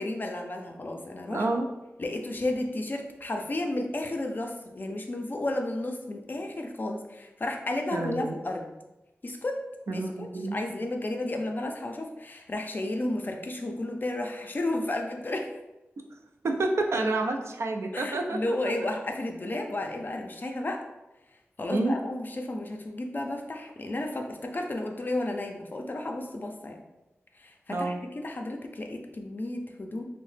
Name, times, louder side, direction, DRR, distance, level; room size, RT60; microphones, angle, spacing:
voice 1, 0.0-1.5 2.0-8.6 9.2-9.6 9.9-15.5 17.9-20.8 21.6-26.8 27.4-30.0, left 2 dB, 45° left, 3 dB, 0.4 m, -32 dB
voice 2, 1.3-1.7 7.9-8.4 9.9-10.6 16.4-18.7 21.7-22.0 27.7-28.0, right 2 dB, 80° right, 3 dB, 0.3 m, -29 dB
2.7 x 2.0 x 3.2 m, 1.0 s
wide cardioid pair, 70°, 5 cm